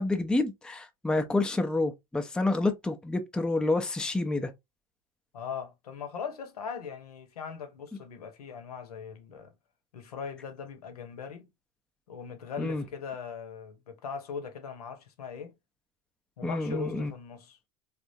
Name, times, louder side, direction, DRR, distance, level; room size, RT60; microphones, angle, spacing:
voice 1, 0.0-4.5 12.6-12.8 16.4-17.1, left 2 dB, 5° left, 0.5 m, -28 dB
voice 2, 5.3-9.5 9.9-11.5 12.1-15.5 16.4-17.6, left 6 dB, 80° left, 0.9 m, -40 dB
3.5 x 2.4 x 2.6 m
hypercardioid pair, 90°, 19 cm